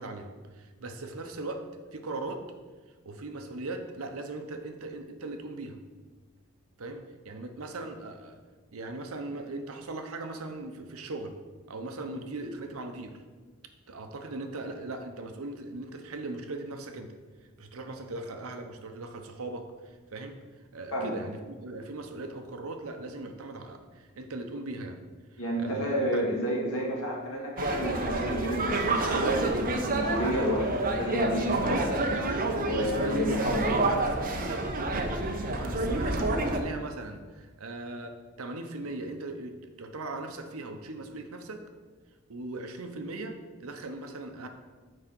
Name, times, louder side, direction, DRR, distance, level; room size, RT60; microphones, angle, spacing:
voice 1, 0.0-1.7 1.9-2.4 3.0-5.8 6.8-8.4 8.7-11.3 11.7-13.2 13.9-17.2 17.6-20.4 20.7-25.0 25.3-26.2 31.7-34.7 35.4-41.6 42.3-44.5, right 2 dB, 75° right, 6 dB, 0.8 m, -39 dB
voice 2, 25.4-32.0 32.5-33.8, equal, 75° left, -2 dB, 2.0 m, -31 dB
sound 1, 27.6-36.6, right 2 dB, 40° right, 0.8 m, -28 dB
6.3 x 4.8 x 6.1 m, 1.4 s
head